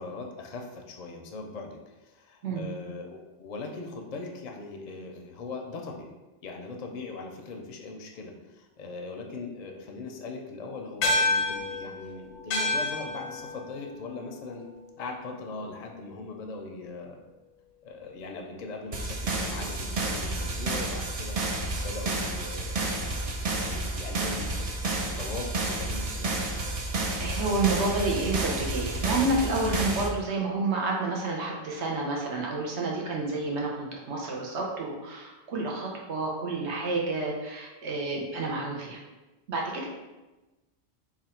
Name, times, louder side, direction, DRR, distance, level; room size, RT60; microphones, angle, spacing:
voice 1, 0.0-6.1 6.4-14.6 15.0-17.2 17.8-24.9 25.2-26.5, left 3 dB, 55° left, 2 dB, 0.5 m, -40 dB
sound 1, 11.0-15.7, left 2 dB, 90° left, 1.0 m, -30 dB
sound 2, 18.9-30.1, right 2 dB, 50° right, 0.4 m, -30 dB
voice 2, 27.2-39.0 39.5-39.9, right 2 dB, 80° right, -1 dB, 1.1 m, -30 dB
3.3 x 2.4 x 4.2 m, 1.1 s
omnidirectional pair, 1.1 m